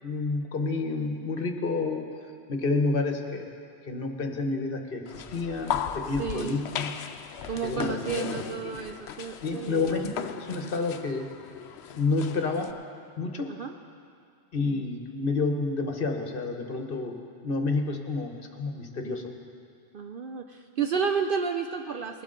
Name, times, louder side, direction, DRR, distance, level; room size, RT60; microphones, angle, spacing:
voice 1, 0.0-3.5 3.8-6.9 7.6-8.5 9.4-11.3 12.0-12.7 13.2-13.5 14.5-17.1 17.4-19.3, left 3 dB, 50° left, 4 dB, 1.1 m, -29 dB
sound 1, 5.1-12.7, left 8 dB, 65° left, 0.8 m, -37 dB
voice 2, 6.2-6.6 7.5-10.0 13.5-13.7 19.9-22.2, right 6 dB, 60° right, 5 dB, 0.6 m, -31 dB
20.0 x 11.5 x 3.8 m, 2.4 s
omnidirectional pair, 1.3 m